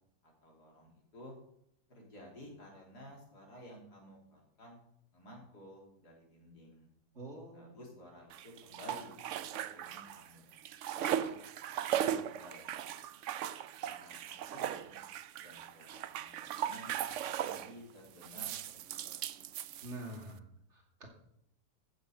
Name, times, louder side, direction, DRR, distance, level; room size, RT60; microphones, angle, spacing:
voice 1, 0.2-1.4 1.9-4.8 5.1-6.9 7.5-9.2 9.5-10.5 11.1-11.4 11.8-13.0 13.8-15.0 15.4-16.9 17.3-19.3, equal, 85° left, -1 dB, 4.1 m, -53 dB
voice 2, 7.1-7.8 19.8-20.4 20.7-21.1, right 1 dB, 45° right, 0 dB, 2.9 m, -46 dB
sound 1, 8.3-10.3 10.5-17.7 18.2-20.2, right 10 dB, 70° right, 0.8 m, -38 dB
14.5 x 6.7 x 6.1 m, 0.74 s
omnidirectional pair, 1.7 m